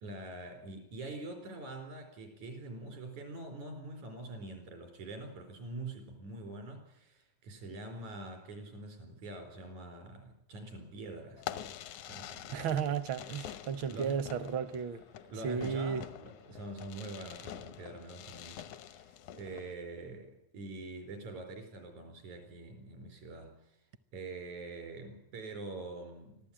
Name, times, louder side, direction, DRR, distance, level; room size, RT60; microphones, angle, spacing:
voice 1, 0.0-11.7 12.0-12.7 13.9-14.2 14.7-14.8 15.2-23.8 24.1-26.5, right 2 dB, 85° right, 5.8 m, -45 dB
Fireworks, 11.4-19.7, left 11 dB, 85° left, 2.4 m, -46 dB
voice 2, 12.5-15.0 15.4-16.0, right 7 dB, 65° right, 1.2 m, -34 dB
24.5 x 15.0 x 8.8 m
omnidirectional pair, 3.3 m